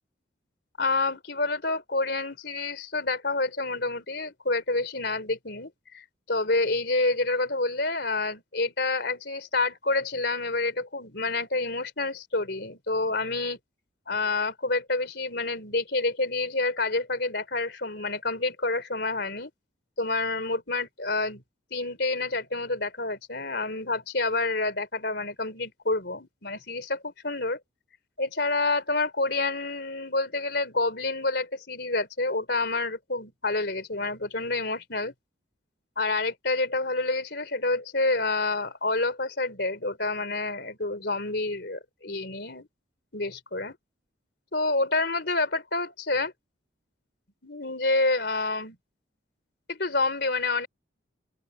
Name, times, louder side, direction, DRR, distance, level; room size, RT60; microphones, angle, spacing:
voice 1, 0.8-13.6 14.1-19.5 20.0-21.4 21.7-27.6 28.2-35.1 36.0-42.7 43.1-43.8 44.5-46.3 47.4-48.8 49.7-50.7, left 3 dB, 55° left, 4.0 m, -28 dB
open air
head